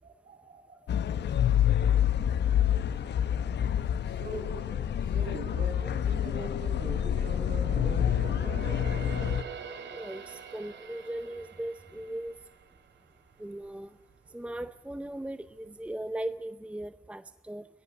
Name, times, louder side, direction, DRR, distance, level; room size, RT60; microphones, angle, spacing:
voice 1, 0.0-0.9 4.1-8.4, right 2 dB, 45° right, 5 dB, 5.8 m, -42 dB
sound 1, 0.9-9.4, left 9 dB, 60° left, 1.0 m, -27 dB
sound 2, 6.5-13.8 14.2-14.4 14.9-15.7 16.0-16.1, right 6 dB, 70° right, 3.0 m, -45 dB
voice 2, 9.9-12.3 13.4-13.9 14.3-17.7, right 1 dB, 5° right, 12 dB, 0.6 m, -38 dB
21.0 x 16.5 x 8.1 m, 1.0 s
cardioid pair, 90°, 20 cm